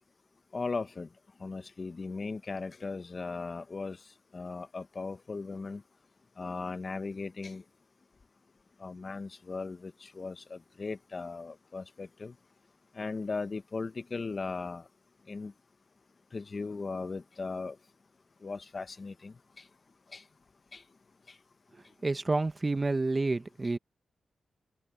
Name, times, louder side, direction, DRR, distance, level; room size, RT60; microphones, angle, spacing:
voice 1, 0.5-1.1 1.4-4.0 4.3-5.8 6.4-7.6 8.8-12.3 13.0-14.8 15.3-15.5 16.3-17.8 18.4-19.3 20.1-20.2 20.7-20.8, left 4 dB, 35° left, 0.7 m, -37 dB
voice 2, 22.0-23.8, right 3 dB, 20° right, 0.9 m, -29 dB
wide cardioid pair, 150°, 0 cm